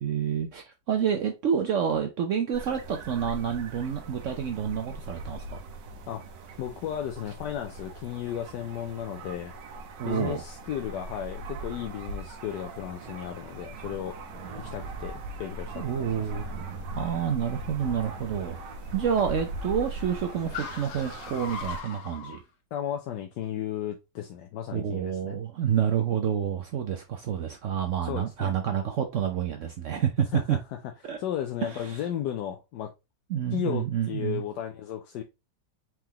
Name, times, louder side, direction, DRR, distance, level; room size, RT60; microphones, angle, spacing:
voice 1, 0.0-5.6 10.0-10.4 15.7-16.4 17.0-18.6 18.9-22.4 24.7-30.6 31.1-31.2 31.9-32.0 33.3-34.4, right 8 dB, 70° right, 0.7 m, -28 dB
sound 1, 2.5-21.8, right 2 dB, 90° right, 1.4 m, -40 dB
voice 2, 6.1-9.5 10.0-14.2 14.6-16.5 22.7-25.4 28.0-28.5 30.3-30.8 31.2-32.9 33.5-35.2, left 10 dB, 80° left, 1.2 m, -34 dB
sound 2, 13.0-19.5, right 3 dB, 30° right, 1.2 m, -50 dB
Car, 13.6-22.4, left 5 dB, 55° left, 1.0 m, -44 dB
4.5 x 3.7 x 2.9 m
omnidirectional pair, 1.9 m